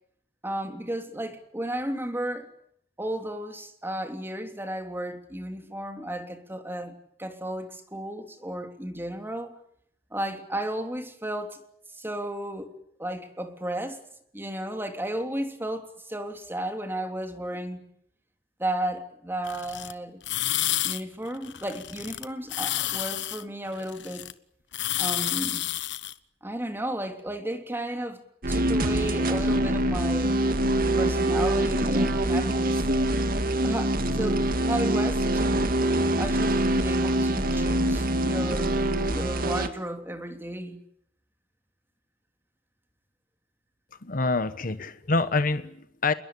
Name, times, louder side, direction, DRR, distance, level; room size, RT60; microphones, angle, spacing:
voice 1, 0.4-2.5 3.0-9.6 10.1-11.6 12.0-12.7 13.0-14.0 14.3-17.8 18.6-20.2 20.8-24.3 25.0-25.7 26.4-30.4 31.0-32.8 33.6-35.8 36.2-38.8 39.1-40.8, right 1 dB, 10° right, 3.2 m, -33 dB
sound 1, 19.4-19.9 20.2-21.0 21.3-22.2 22.5-24.3 24.7-26.1, left 13 dB, 70° left, 1.2 m, -30 dB
sound 2, 28.4-39.7, right 1 dB, 55° right, 2.0 m, -24 dB
voice 2, 44.0-46.1, left 3 dB, 50° left, 1.2 m, -26 dB
29.0 x 21.5 x 8.6 m
head